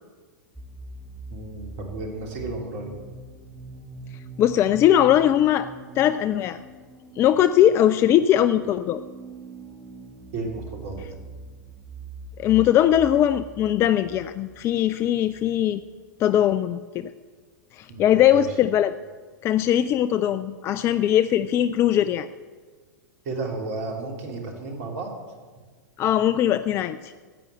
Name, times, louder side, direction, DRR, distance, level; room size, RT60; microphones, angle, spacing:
sound 1, 0.6-16.1, right 2 dB, 10° right, 2.0 m, -43 dB
voice 1, 1.3-3.0 10.3-11.2 17.9-18.5 23.2-25.1, right 3 dB, 50° right, 2 dB, 3.0 m, -33 dB
voice 2, 4.4-5.7 6.0-6.6 7.2-9.0 12.4-15.8 16.2-17.1 17.7-19.0 19.4-22.3 26.0-27.1, left 11 dB, 25° left, 13 dB, 0.4 m, -20 dB
13.5 x 9.0 x 7.7 m, 1.5 s
figure-of-eight pair, 95°, 10 cm